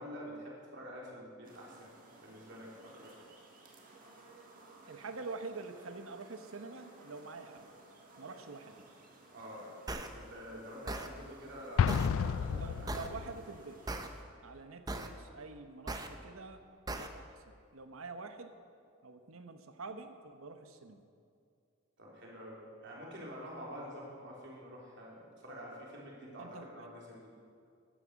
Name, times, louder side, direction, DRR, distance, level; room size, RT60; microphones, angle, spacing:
voice 1, 0.0-1.9 2.2-3.2 9.3-13.0 22.0-27.4, equal, 55° right, -3 dB, 3.3 m, -47 dB
sound 1, 1.4-14.2, right 2 dB, 40° right, 1.7 m, -58 dB
voice 2, 4.9-7.7 8.2-8.8 12.5-13.8 14.4-18.6 19.0-21.0 26.4-26.9, right 4 dB, 80° right, 8 dB, 1.0 m, -46 dB
sound 2, 9.9-10.1 10.9-11.1 11.9-12.1 12.9-13.1 13.9-14.1 14.9-15.1 15.9-16.1 16.9-17.1, right 2 dB, 20° right, 0.6 m, -38 dB
Explosion, 11.8-13.5, left 7 dB, 80° left, 0.3 m, -31 dB
12.5 x 9.8 x 6.3 m, 2.3 s
head